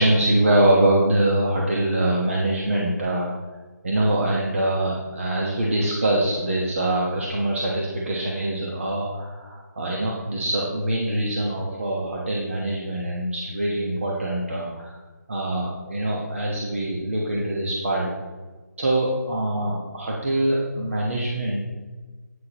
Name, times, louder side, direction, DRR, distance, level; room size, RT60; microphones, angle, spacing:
voice 1, 0.0-3.3 3.8-14.9 15.3-18.1 18.8-21.7, right 1 dB, 45° right, -3 dB, 1.3 m, -24 dB
9.4 x 8.5 x 3.0 m, 1.3 s
figure-of-eight pair, 175°, 10 cm